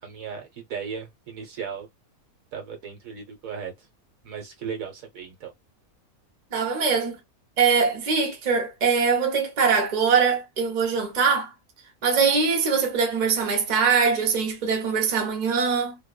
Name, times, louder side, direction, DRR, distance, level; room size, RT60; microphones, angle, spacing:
voice 1, 0.0-1.9 2.5-3.9 4.2-5.5, right 6 dB, 70° right, 1.3 m, -36 dB
voice 2, 6.5-7.2 7.6-11.5 12.0-16.0, right 5 dB, 40° right, 0.7 m, -22 dB
2.8 x 2.0 x 2.2 m
omnidirectional pair, 1.5 m